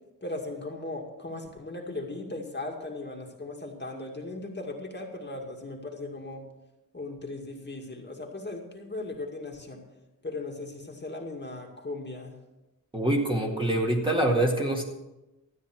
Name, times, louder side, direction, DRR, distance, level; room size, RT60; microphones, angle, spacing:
voice 1, 0.2-6.4 6.9-9.8 10.2-12.4, left 2 dB, 30° left, 0 dB, 2.3 m, -37 dB
voice 2, 12.9-14.8, right 1 dB, 15° right, 0 dB, 1.9 m, -25 dB
13.5 x 9.4 x 6.1 m, 0.97 s
wide cardioid pair, 100°, 34 cm